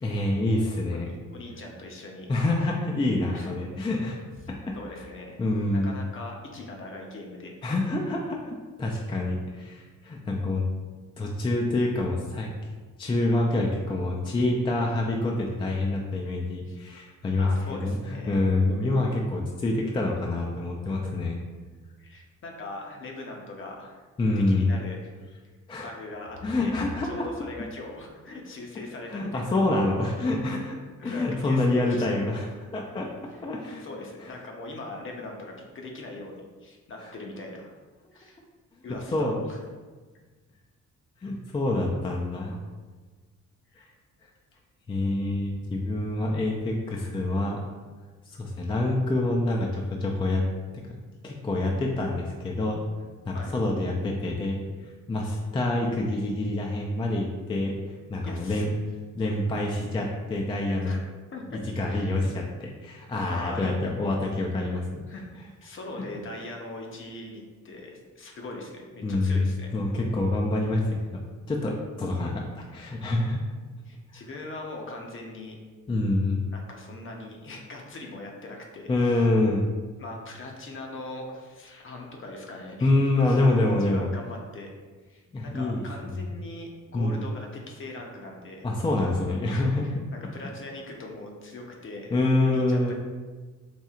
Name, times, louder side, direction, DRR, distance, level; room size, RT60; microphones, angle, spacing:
voice 1, 0.0-1.1 2.3-4.2 4.5-5.0 5.4-6.0 7.6-10.6 11.2-12.5 13.0-17.5 17.8-21.4 24.2-24.7 25.7-25.9 26.4-27.3 29.1-30.8 31.0-32.5 32.7-33.1 33.4-33.8 34.2-34.3 37.0-37.1 39.1-39.4 41.2-42.6 44.9-47.6 48.3-50.4 50.7-51.0 51.2-52.8 53.2-54.6 55.1-57.7 58.1-58.7 59.1-61.0 61.5-65.0 69.0-69.5 69.7-71.2 71.5-73.4 74.1-74.2 75.9-76.4 78.9-79.6 82.8-84.1 85.3-85.8 86.9-87.2 88.6-89.9 92.1-92.9, left 2 dB, 20° left, -1 dB, 0.3 m, -26 dB
voice 2, 0.9-2.3 3.3-3.5 4.7-5.4 5.7-7.5 16.7-16.8 17.4-18.4 22.0-24.0 24.5-25.1 25.8-26.7 27.0-29.6 29.9-30.0 31.0-32.1 33.3-33.4 33.8-37.7 38.1-38.4 38.8-39.6 43.7-43.9 53.3-53.5 58.2-58.7 60.8-61.0 61.3-61.6 61.9-62.1 63.3-63.9 65.1-65.2 65.6-69.7 73.9-75.6 76.5-79.3 80.0-82.9 83.2-83.4 83.8-84.7 85.1-88.7 89.5-89.9 90.3-92.1 92.4-92.9, left 2 dB, 45° left, 1 dB, 0.7 m, -41 dB
4.2 x 2.6 x 2.4 m, 1.4 s
cardioid pair, 90°, 30 cm